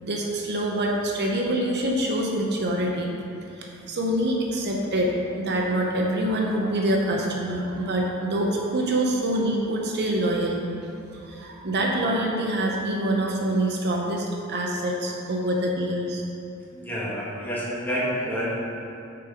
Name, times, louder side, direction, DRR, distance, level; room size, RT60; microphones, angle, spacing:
voice 1, 0.0-3.1 3.5-10.6 11.2-16.2, right 1 dB, 55° right, 0 dB, 0.8 m, -25 dB
voice 2, 16.7-18.5, equal, 10° left, -7 dB, 1.6 m, -28 dB
8.6 x 4.7 x 4.9 m, 2.7 s
head